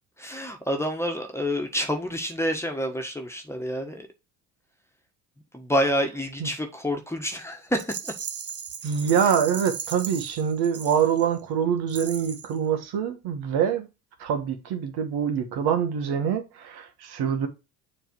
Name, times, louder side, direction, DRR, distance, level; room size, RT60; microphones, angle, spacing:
voice 1, 0.2-4.1 5.5-8.1, equal, 5° left, 1.5 m, -28 dB
Rattle, 7.8-11.4 11.9-12.6, right 7 dB, 35° right, 1.0 m, -37 dB
voice 2, 8.8-13.9 14.2-17.5, right 7 dB, 65° right, 1.6 m, -25 dB
7.0 x 3.3 x 4.6 m
supercardioid pair, 85°, 41 cm